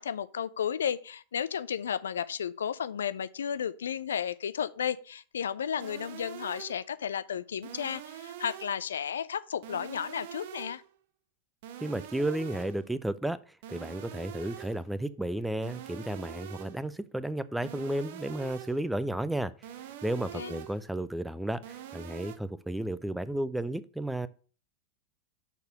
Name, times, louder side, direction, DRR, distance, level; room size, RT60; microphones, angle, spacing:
voice 1, 0.0-10.8 20.3-20.6, left 8 dB, 65° left, 0.4 m, -33 dB
sound 1, 5.8-6.9 7.6-8.9 9.6-10.9 11.6-12.9 13.6-14.9 15.6-16.9 17.6-18.9 19.6-20.9 21.6-22.4, right 11 dB, 50° right, 0.7 m, -45 dB
voice 2, 11.8-13.4 13.7-19.5 20.0-24.3, right 1 dB, 5° right, 0.4 m, -33 dB
6.6 x 4.5 x 6.6 m
figure-of-eight pair, 90°, 0 cm